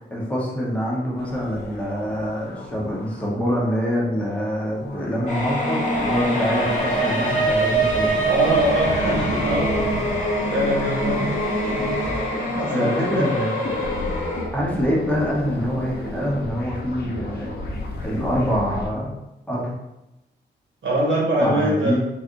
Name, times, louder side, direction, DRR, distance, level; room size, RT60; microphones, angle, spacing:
voice 1, 0.1-8.3 10.8-11.1 12.7-14.1 14.5-17.5 18.0-19.1 19.5-19.7 21.4-22.0, equal, 5° left, -5 dB, 1.0 m, -25 dB
sound 1, 1.2-18.9, left 2 dB, 55° left, 0.7 m, -34 dB
sound 2, 5.3-14.4, right 1 dB, 40° left, 1.2 m, -24 dB
voice 2, 8.3-9.8 10.5-11.4 12.5-13.2 20.8-22.0, right 1 dB, 85° right, -3 dB, 1.3 m, -23 dB
3.9 x 3.2 x 2.6 m, 0.91 s
wide cardioid pair, 115°, 19 cm